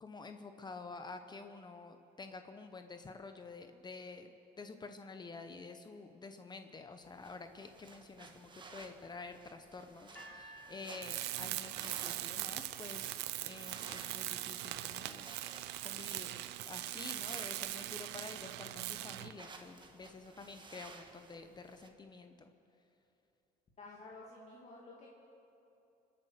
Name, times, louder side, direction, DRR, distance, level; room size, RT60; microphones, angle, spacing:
voice 1, 0.0-4.3 4.6-15.3 15.8-22.5, left 3 dB, 25° left, 7 dB, 0.8 m, -49 dB
sound 1, 7.0-21.9, right 3 dB, 25° right, 1.4 m, -56 dB
sound 2, 10.1-12.2, right 2 dB, 10° left, 4.3 m, -55 dB
Tools, 11.0-19.4, right 15 dB, 90° right, 0.6 m, -41 dB
voice 2, 23.8-25.1, left 2 dB, 40° left, -4 dB, 2.3 m, -52 dB
25.5 x 8.7 x 6.5 m, 2.9 s
cardioid pair, 110°, 17 cm